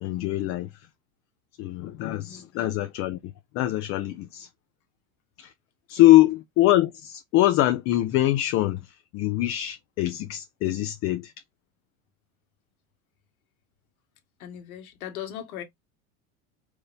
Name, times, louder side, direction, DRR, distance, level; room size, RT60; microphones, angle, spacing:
voice 1, 0.0-0.7 1.6-3.2 3.5-4.5 5.4-5.5 5.9-8.8 9.1-11.3, left 15 dB, 35° left, 0.5 m, -23 dB
voice 2, 2.3-2.6 6.0-6.2 14.4-15.6, left 10 dB, 85° left, 1.6 m, -39 dB
4.6 x 2.6 x 3.3 m
supercardioid pair, 135°, 42 cm